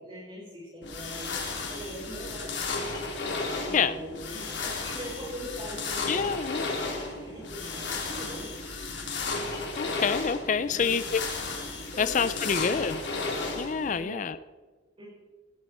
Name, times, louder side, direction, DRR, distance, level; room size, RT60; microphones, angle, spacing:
voice 1, 0.0-2.6 3.5-8.5 10.6-10.9 11.9-13.0 13.9-14.2 15.0-15.1, equal, 30° right, -7 dB, 4.9 m, -41 dB
sound 1, 0.8-14.0, left 3 dB, 70° left, 3.3 m, -34 dB
voice 2, 6.1-6.7 9.8-11.2 12.0-13.0 13.6-14.4, left 6 dB, 40° left, 14 dB, 0.4 m, -27 dB
18.5 x 13.5 x 4.3 m, 1.4 s
head